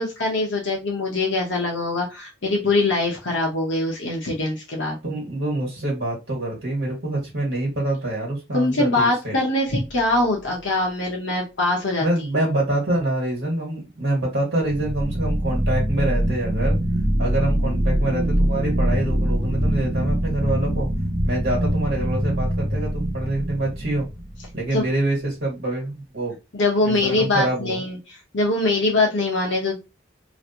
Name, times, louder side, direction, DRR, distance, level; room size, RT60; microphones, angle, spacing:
voice 1, 0.0-5.0 8.5-12.1 24.7-24.8 26.5-28.0 28.3-29.9, left 2 dB, 70° left, -2 dB, 1.0 m, -23 dB
voice 2, 5.0-9.4 12.0-16.8 17.2-20.9 21.2-24.0 24.5-26.3 26.8-27.8, right 1 dB, 65° right, -4 dB, 1.6 m, -25 dB
sound 1, 9.7-10.2 14.6-24.8, equal, 15° right, 0.6 m, -23 dB
3.1 x 2.6 x 2.8 m, 0.25 s
head